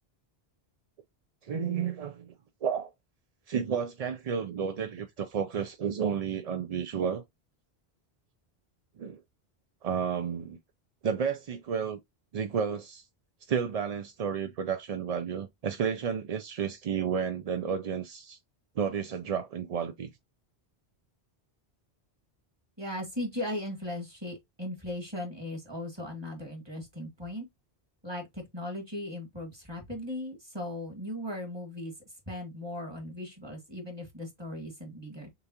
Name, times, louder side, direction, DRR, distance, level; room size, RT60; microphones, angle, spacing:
voice 1, 1.4-2.3 2.6-2.9 3.5-7.2 9.0-9.2 9.8-10.6 11.0-12.0 12.3-13.1 13.5-18.4 18.8-20.1, right 7 dB, 55° right, 0.4 m, -31 dB
voice 2, 22.8-27.5 28.0-31.9 32.3-35.3, left 1 dB, 25° right, 1.8 m, -38 dB
6.7 x 2.4 x 2.8 m
omnidirectional pair, 1.1 m